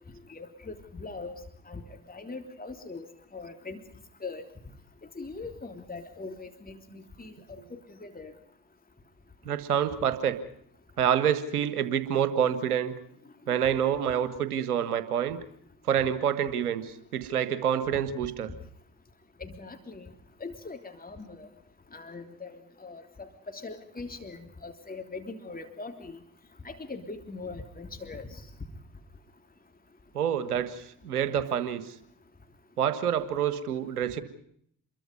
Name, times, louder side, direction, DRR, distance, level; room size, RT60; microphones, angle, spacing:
voice 1, 0.3-1.3 1.7-1.8 2.1-3.1 3.3-3.8 4.2-4.4 5.1-7.3 7.7-8.3 19.4-20.1 20.4-21.5 21.9-26.2 26.6-28.4, left 3 dB, 20° left, 5 dB, 3.3 m, -41 dB
voice 2, 9.4-10.4 11.0-12.9 13.5-15.4 15.9-18.5 30.1-31.8 32.8-34.2, right 9 dB, 85° right, 13 dB, 1.6 m, -27 dB
27.5 x 22.5 x 5.3 m, 0.67 s
figure-of-eight pair, 45°, 44 cm